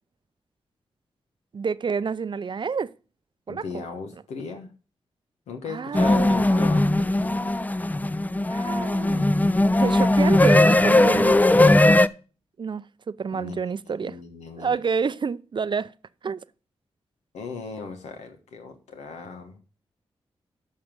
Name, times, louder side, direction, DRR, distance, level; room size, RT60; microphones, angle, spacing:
voice 1, 1.5-2.9 3.5-3.8 5.7-6.6 8.5-9.3 9.8-11.4 11.7-11.9 12.6-14.2 14.6-15.9 16.2-16.4, right 5 dB, 45° right, 0.5 m, -29 dB
voice 2, 3.5-4.7 5.5-7.3 13.3-14.8 17.3-19.6, left 5 dB, 85° left, 1.2 m, -37 dB
sound 1, 5.9-12.1, left 2 dB, 15° left, 0.4 m, -19 dB
6.5 x 5.8 x 7.4 m
supercardioid pair, 45°, 11 cm